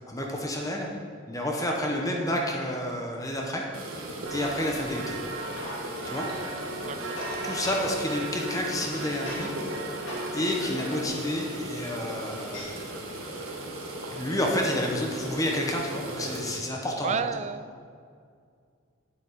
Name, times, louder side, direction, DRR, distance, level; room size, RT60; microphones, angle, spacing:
voice 1, 0.1-0.9 1.3-4.0 4.3-5.2 6.1-6.3 7.4-9.5 10.3-13.1 14.1-17.3, left 1 dB, 15° left, 0 dB, 0.9 m, -30 dB
sound 1, 3.7-16.6, right 1 dB, 90° right, 1.5 m, -38 dB
sound 2, 4.2-11.1, right 2 dB, 65° right, 0.9 m, -37 dB
sound 3, 5.5-15.6, left 1 dB, 65° left, 2.3 m, -43 dB
voice 2, 6.9-7.2 17.0-17.9, right 5 dB, 35° right, 12 dB, 0.4 m, -32 dB
8.5 x 8.5 x 5.0 m, 2.2 s
head